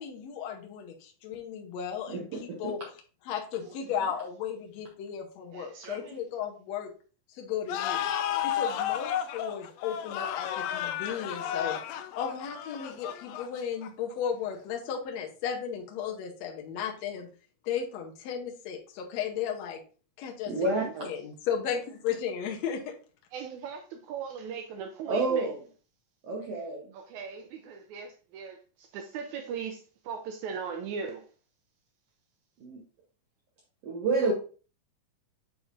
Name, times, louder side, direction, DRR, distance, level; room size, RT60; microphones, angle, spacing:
voice 1, 0.0-2.8 3.3-6.9 7.3-8.1 8.4-11.8 12.1-17.3 17.6-19.8 20.2-20.7 21.0-22.9, left 8 dB, 70° left, 1.7 m, -35 dB
voice 2, 2.1-2.7 20.5-21.1 25.1-25.6 26.2-26.9 32.6-32.8 33.8-34.3, right 3 dB, 60° right, 1.7 m, -29 dB
voice 3, 3.6-4.0 5.5-6.2 20.5-20.9 23.3-25.5 26.9-31.3 34.2-34.3, right 6 dB, 85° right, 1.7 m, -39 dB
sound 1, 7.7-14.1, left 10 dB, 85° left, 2.4 m, -32 dB
8.2 x 4.8 x 2.5 m
omnidirectional pair, 4.0 m